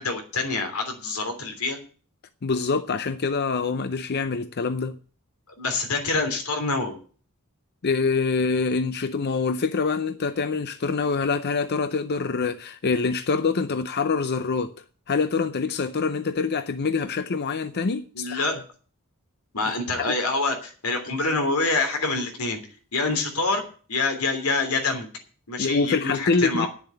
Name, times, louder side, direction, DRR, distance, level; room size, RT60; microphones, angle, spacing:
voice 1, 0.0-1.8 5.6-7.0 18.1-18.6 19.5-22.6 22.9-23.6 23.9-25.1 25.5-26.7, left 3 dB, 90° left, 3.1 m, -26 dB
voice 2, 2.4-5.0 7.8-18.5 20.1-20.2 25.6-26.7, left 4 dB, 50° left, 0.6 m, -25 dB
9.9 x 7.2 x 9.0 m
head